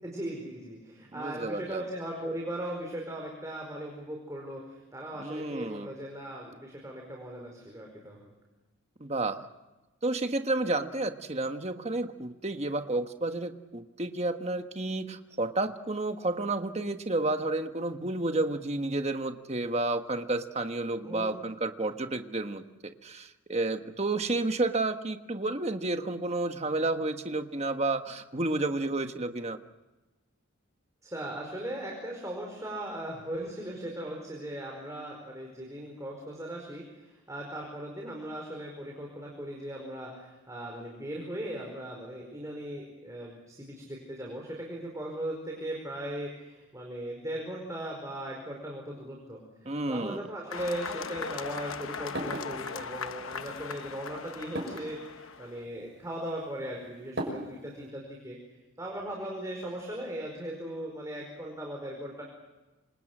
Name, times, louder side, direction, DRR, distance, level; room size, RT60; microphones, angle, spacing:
voice 1, 0.0-8.3 21.0-21.3 31.0-58.4 58.8-62.2, right 1 dB, 15° right, -1 dB, 4.9 m, -38 dB
voice 2, 1.1-1.8 5.2-5.9 9.0-9.4 10.0-29.6 49.6-50.3, right 2 dB, 30° right, 7 dB, 1.4 m, -31 dB
sound 1, 50.5-55.6, left 5 dB, 75° left, 1.0 m, -39 dB
sound 2, 50.6-57.9, right 1 dB, 55° right, 6.7 m, -43 dB
27.5 x 26.5 x 6.2 m, 1.1 s
head